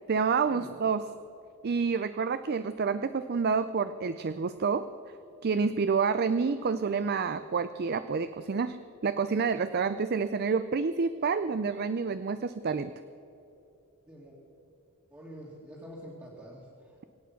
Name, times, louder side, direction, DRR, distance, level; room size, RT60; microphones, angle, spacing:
voice 1, 0.1-1.0 1.6-4.9 5.4-12.9, right 5 dB, 45° right, 12 dB, 0.4 m, -28 dB
voice 2, 15.1-16.6, equal, 15° right, -6 dB, 2.1 m, -46 dB
24.5 x 8.6 x 5.9 m, 2.8 s
head